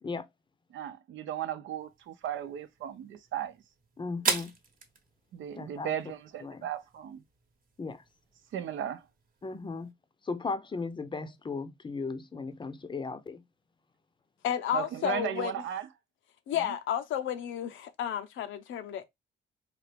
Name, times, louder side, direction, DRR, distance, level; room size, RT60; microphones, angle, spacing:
voice 1, 0.7-3.6 5.3-7.2 8.5-9.0 14.7-15.9 16.6-16.7, right 10 dB, 75° right, 0.7 m, -36 dB
sound 1, 1.8-9.9, right 4 dB, 45° right, 1.0 m, -40 dB
voice 2, 4.0-4.5 5.6-5.9 6.4-6.7 7.8-8.0 9.4-9.9 10.2-13.4, left 4 dB, 25° left, 0.6 m, -36 dB
voice 3, 14.4-15.5 16.5-19.1, left 10 dB, 75° left, 0.7 m, -32 dB
4.2 x 2.4 x 3.3 m
cardioid pair, 90°, 20 cm